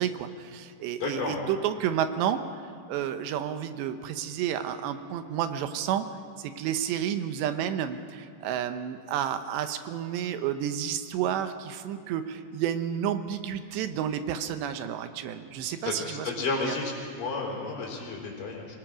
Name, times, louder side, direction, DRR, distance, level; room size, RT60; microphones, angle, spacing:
voice 1, 0.0-2.4 2.9-6.1 6.4-16.7, right 9 dB, 85° right, 9 dB, 3.1 m, -31 dB
voice 2, 1.0-1.4 15.8-16.9 17.2-18.7, left 4 dB, 55° left, -2 dB, 5.3 m, -32 dB
25.5 x 18.5 x 6.3 m, 2.5 s
omnidirectional pair, 5.0 m